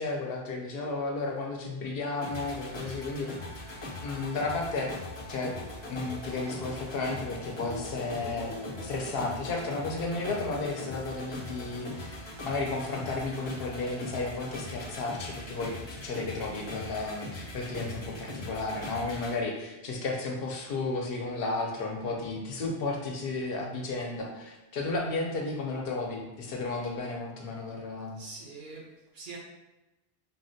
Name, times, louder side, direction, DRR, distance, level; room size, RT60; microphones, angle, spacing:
voice 1, 0.0-3.3 4.0-4.9 5.3-5.5 5.9-28.2, left 3 dB, 65° left, 0 dB, 0.7 m, -33 dB
sound 1, 2.2-19.3, left 2 dB, 35° left, 0.5 m, -40 dB
voice 2, 28.2-29.4, right 3 dB, 60° right, -2 dB, 0.6 m, -44 dB
3.8 x 2.1 x 2.6 m, 1.0 s
omnidirectional pair, 1.1 m